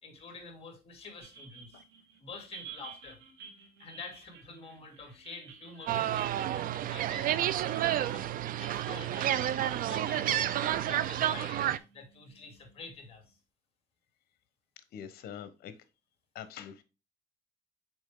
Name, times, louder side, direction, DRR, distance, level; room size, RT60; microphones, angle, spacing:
voice 1, 0.0-1.8 2.2-3.2 3.8-7.3 7.7-9.5 9.8-13.4, left 4 dB, 35° left, 2.6 m, -48 dB
sound 1, 1.2-12.9, right 6 dB, 85° right, 1.9 m, -51 dB
sound 2, 5.9-11.8, right 12 dB, 55° right, 0.5 m, -30 dB
voice 2, 14.9-15.7 16.3-16.8, left 9 dB, 65° left, 1.0 m, -44 dB
6.2 x 4.5 x 3.7 m
cardioid pair, 110°, 17 cm